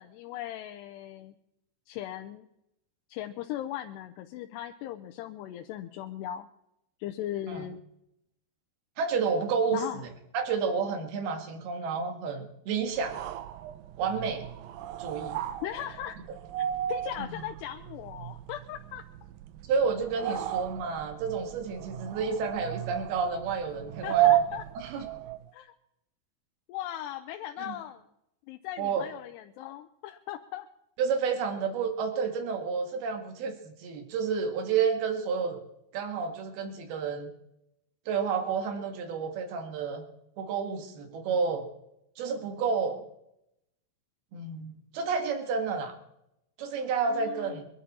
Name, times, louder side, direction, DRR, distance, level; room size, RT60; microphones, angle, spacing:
voice 1, 0.0-1.3 1.9-2.5 3.1-6.5 7.0-7.8 9.7-10.0 15.6-16.2 16.6-19.0 20.3-20.4 24.0-24.6 25.5-25.7 26.7-28.0 28.5-30.7 47.0-47.6, left 12 dB, 85° left, 5 dB, 2.8 m, -38 dB
voice 2, 9.0-10.1 10.3-13.2 14.0-14.5 15.0-15.4 17.2-17.4 19.7-24.3 24.8-25.1 27.6-27.8 28.8-29.1 31.0-35.6 35.9-37.3 38.1-40.0 40.4-41.7 42.2-43.0 44.3-46.0 46.6-47.7, right 5 dB, 70° right, 6 dB, 3.6 m, -30 dB
sound 1, 12.9-25.5, right 12 dB, 85° right, 1.9 m, -33 dB
24.0 x 12.0 x 4.2 m, 0.82 s
omnidirectional pair, 4.8 m